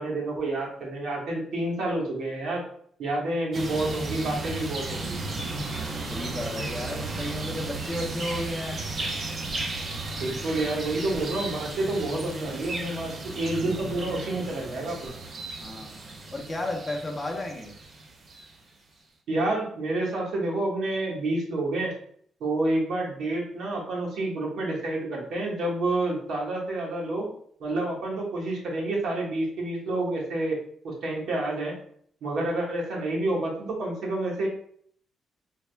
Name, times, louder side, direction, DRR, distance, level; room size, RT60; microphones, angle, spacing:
voice 1, 0.0-2.6 3.0-5.2 10.2-15.1 19.3-21.9 22.4-27.3 27.6-30.6 30.8-31.7 32.2-34.5, right 2 dB, 75° right, -2 dB, 1.1 m, -29 dB
sound 1, 3.5-18.6, right 2 dB, 45° right, 0.6 m, -34 dB
voice 2, 6.1-8.8 15.6-16.0 16.3-17.7, left 1 dB, 20° left, 1 dB, 0.7 m, -33 dB
3.4 x 2.1 x 3.3 m, 0.62 s
cardioid pair, 90°, 0 cm